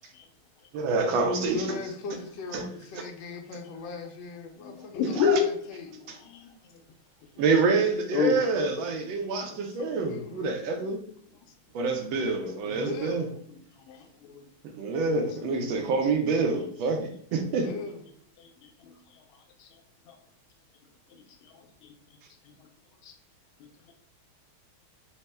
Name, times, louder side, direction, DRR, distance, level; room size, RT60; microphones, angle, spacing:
voice 1, 0.7-1.8 2.5-2.6 5.2-5.4 6.1-6.2 7.4-11.0 11.7-13.2 14.7-17.7, right 4 dB, 75° right, 4 dB, 1.3 m, -27 dB
voice 2, 1.3-5.9 9.5-10.6 12.1-12.2 12.6-13.3 13.9-14.0 17.4-18.0, left 3 dB, 70° left, 1 dB, 1.3 m, -40 dB
voice 3, 4.6-5.5 6.3-6.5 8.1-8.4 13.9-14.4 18.4-18.5 21.8-21.9 23.0-23.1, left 7 dB, 90° left, 5 dB, 1.4 m, -27 dB
4.2 x 2.1 x 3.2 m, 0.64 s
omnidirectional pair, 2.2 m